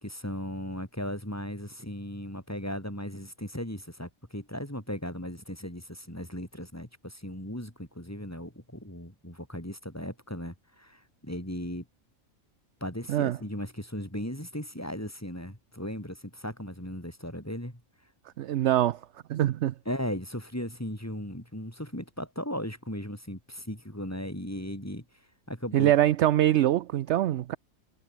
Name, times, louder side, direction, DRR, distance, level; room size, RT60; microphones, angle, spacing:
voice 1, 0.0-11.8 12.8-17.8 19.8-25.0 25.5-26.0, equal, 10° left, 4.9 m, -37 dB
voice 2, 18.4-19.0 19.3-19.7 25.7-27.6, right 12 dB, 65° right, 0.8 m, -23 dB
omnidirectional pair, 1.5 m